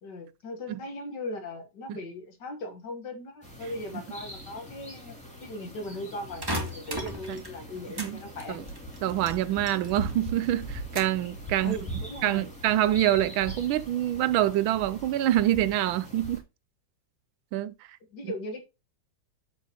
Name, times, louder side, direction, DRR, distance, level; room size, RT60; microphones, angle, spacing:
voice 1, 0.0-8.6 11.6-12.5 18.1-18.6, left 1 dB, 60° left, 2.0 m, -38 dB
sound 1, 3.4-16.4, right 1 dB, 5° left, 2.5 m, -41 dB
sound 2, 6.4-8.1 8.4-10.2 10.4-11.3 11.7-12.2, right 1 dB, 10° right, 1.5 m, -36 dB
voice 2, 9.0-11.7 12.2-16.4 17.5-17.7 18.2-18.3, right 13 dB, 80° right, 1.3 m, -26 dB
8.1 x 7.9 x 2.9 m
omnidirectional pair, 2.2 m